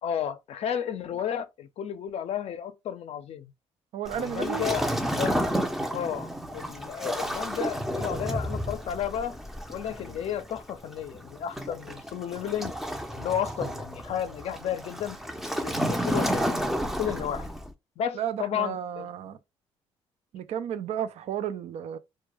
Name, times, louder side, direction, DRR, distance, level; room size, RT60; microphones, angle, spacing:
voice 1, 0.0-3.5 4.1-5.4 5.9-9.4 9.7-12.7 13.1-15.2 15.6-17.5 18.0-19.1, left 9 dB, 60° left, 0.5 m, -33 dB
voice 2, 3.9-4.7 18.1-19.4 20.3-22.0, right 9 dB, 65° right, 0.4 m, -33 dB
Waves surf, 4.0-17.7, equal, 5° right, 0.5 m, -31 dB
2.2 x 2.2 x 3.0 m
supercardioid pair, 70°, 12 cm